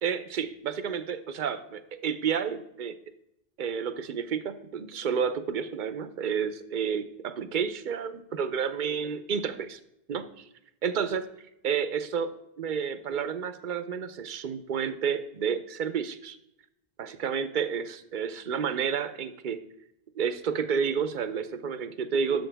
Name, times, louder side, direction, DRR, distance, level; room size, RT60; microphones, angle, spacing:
voice 1, 0.0-2.9 3.6-9.8 10.1-10.2 10.8-11.3 11.6-12.3 12.6-16.4 17.0-19.6 20.1-22.5, right 7 dB, 55° right, 12 dB, 0.8 m, -30 dB
11.0 x 7.0 x 3.4 m, 0.84 s
omnidirectional pair, 1.0 m